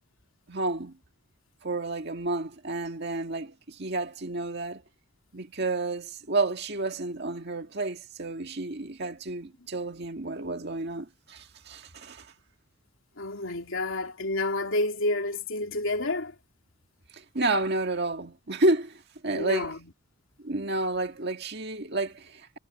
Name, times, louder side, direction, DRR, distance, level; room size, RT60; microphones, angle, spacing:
voice 1, 0.5-1.0 1.6-4.8 5.3-12.3 17.1-19.7 20.4-22.6, right 2 dB, 50° right, 1.9 m, -30 dB
voice 2, 13.2-16.4 19.3-19.9, left 2 dB, 65° left, 3.0 m, -29 dB
head